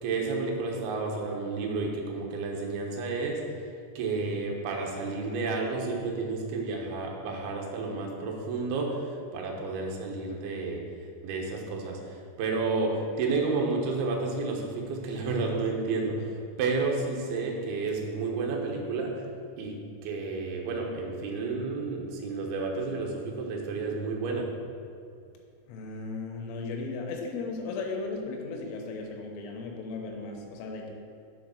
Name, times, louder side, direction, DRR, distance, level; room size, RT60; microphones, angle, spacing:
voice 1, 0.0-3.4 4.0-10.8 11.2-19.2 19.6-24.5, right 3 dB, 70° right, 0 dB, 2.6 m, -31 dB
voice 2, 25.7-30.9, left 3 dB, 80° left, 1 dB, 3.4 m, -36 dB
7.3 x 4.8 x 6.4 m, 2.4 s
omnidirectional pair, 5.6 m